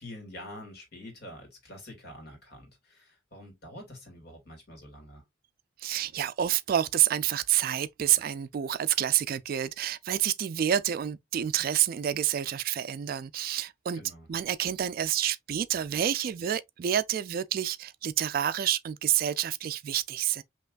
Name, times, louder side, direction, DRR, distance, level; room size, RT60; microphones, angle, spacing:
voice 1, 0.0-5.2 13.9-14.3, left 1 dB, 55° left, 2.3 m, -46 dB
voice 2, 5.8-14.0 14.3-20.4, right 10 dB, 50° right, 0.3 m, -28 dB
5.6 x 2.9 x 2.4 m
head